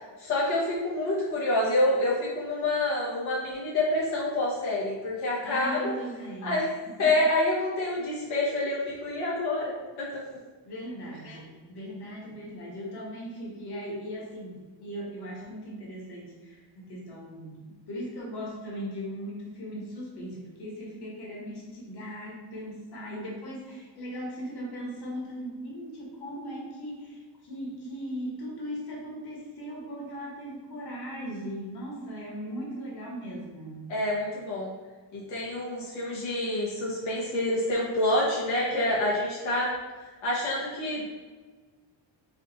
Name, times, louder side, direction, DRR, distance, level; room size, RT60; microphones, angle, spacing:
voice 1, 0.2-5.9 6.4-6.6 7.0-10.1 11.2-11.4 32.4-32.5 33.9-34.7 35.1-39.7 40.2-41.0, left 1 dB, 85° left, -6 dB, 1.2 m, -27 dB
voice 2, 5.4-7.1 10.6-33.9, equal, 55° left, -3 dB, 1.5 m, -38 dB
5.0 x 2.5 x 4.0 m, 1.4 s
cardioid pair, 130°, 46 cm